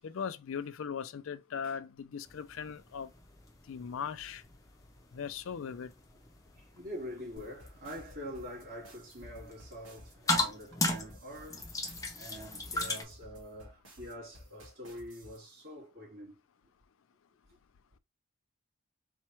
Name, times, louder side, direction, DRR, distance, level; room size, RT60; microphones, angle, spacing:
voice 1, 0.0-3.1 3.7-4.4 5.1-5.9, left 7 dB, 70° left, 0.4 m, -39 dB
sound 1, 2.3-13.0, left 2 dB, 15° left, 0.5 m, -38 dB
voice 2, 6.7-11.7 12.1-16.4, equal, 45° right, 2.6 m, -45 dB
sound 2, 7.4-15.4, equal, 70° right, 2.5 m, -53 dB
4.3 x 2.2 x 4.4 m
head